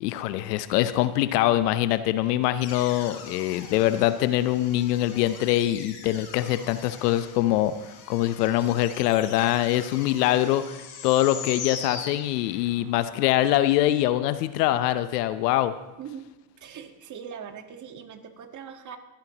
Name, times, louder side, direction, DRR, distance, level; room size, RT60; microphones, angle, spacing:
voice 1, 0.0-7.7 8.1-10.8 11.0-15.7, left 14 dB, 75° left, 13 dB, 0.9 m, -23 dB
sound 1, 2.6-12.9, left 6 dB, 55° left, 3.8 m, -41 dB
voice 2, 16.6-19.0, right 7 dB, 40° right, 6 dB, 1.7 m, -41 dB
23.0 x 10.5 x 3.0 m, 1.0 s
hypercardioid pair, 90°, 48 cm